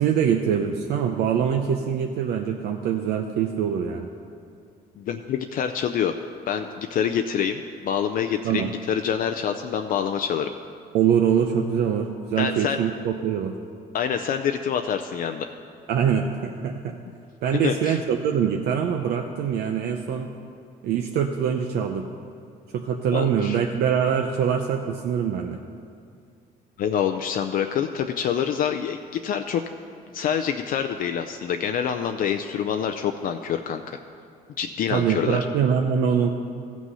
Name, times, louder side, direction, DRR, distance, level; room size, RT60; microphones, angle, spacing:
voice 1, 0.0-4.1 8.4-8.7 10.9-13.5 15.9-17.0 17.4-20.3 20.8-22.1 22.7-25.6 34.9-36.3, right 8 dB, 75° right, 4 dB, 0.7 m, -24 dB
voice 2, 5.0-6.1 6.5-10.5 12.4-12.8 13.9-15.5 17.6-18.0 23.1-23.6 26.8-29.6 30.1-34.0 34.6-35.4, left 8 dB, 55° left, 6 dB, 0.5 m, -26 dB
15.0 x 6.2 x 5.5 m, 2.3 s
cardioid pair, 110°, 17 cm